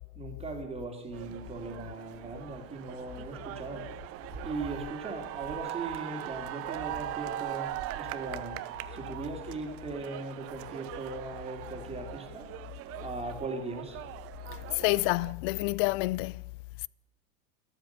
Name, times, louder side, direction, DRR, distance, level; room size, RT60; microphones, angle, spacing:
voice 1, 0.1-3.9 4.4-12.5 13.0-14.0, right 3 dB, 20° right, 3.0 m, -39 dB
sound 1, 1.1-15.3, right 14 dB, 50° right, 0.9 m, -41 dB
voice 2, 14.8-16.4, left 22 dB, 60° left, 0.4 m, -28 dB
13.0 x 11.0 x 8.1 m
supercardioid pair, 110°, 30 cm